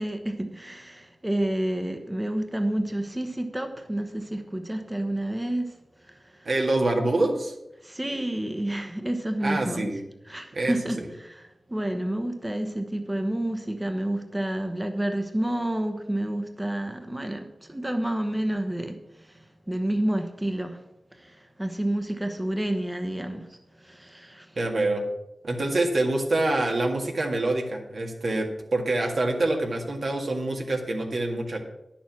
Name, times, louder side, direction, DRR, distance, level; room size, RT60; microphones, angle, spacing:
voice 1, 0.0-6.5 7.8-9.9 10.2-20.8 21.1-24.6, right 1 dB, 15° right, 6 dB, 1.0 m, -30 dB
voice 2, 6.5-7.5 9.4-10.0 10.5-11.1 24.6-25.1 25.4-31.6, right 2 dB, 70° right, 2 dB, 1.8 m, -26 dB
10.0 x 7.1 x 6.0 m, 0.88 s
wide cardioid pair, 70°, 0 cm